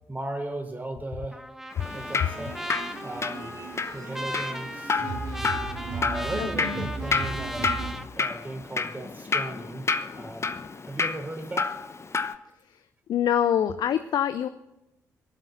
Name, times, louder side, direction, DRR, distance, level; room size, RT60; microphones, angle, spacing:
voice 1, 0.1-1.4 1.9-2.6 3.0-3.5 3.9-5.0 5.9-7.7 8.2-10.5 10.8-11.7, right 1 dB, 20° right, 4 dB, 3.5 m, -36 dB
Trumpet, 1.3-8.1, equal, 5° right, 1.2 m, -37 dB
Drip, 1.7-12.3, left 4 dB, 30° left, 0.9 m, -31 dB
sound 1, 2.1-7.9, right 4 dB, 50° right, 2.0 m, -37 dB
voice 2, 6.4-6.9 12.6-14.5, left 9 dB, 55° left, 11 dB, 0.6 m, -26 dB
22.0 x 7.8 x 5.9 m, 0.92 s
figure-of-eight pair, 40°, 9 cm